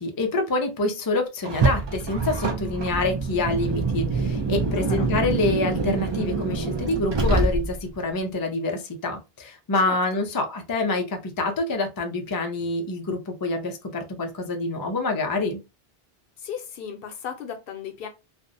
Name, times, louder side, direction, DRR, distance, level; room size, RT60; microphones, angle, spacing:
voice 1, 0.0-15.6, left 2 dB, 35° left, 0.3 m, -26 dB
Car, 1.4-8.0, right 3 dB, 45° right, 0.3 m, -25 dB
voice 2, 4.7-5.1 9.8-10.3 16.4-18.1, left 7 dB, 70° left, 0.7 m, -36 dB
2.5 x 2.0 x 2.5 m
omnidirectional pair, 1.1 m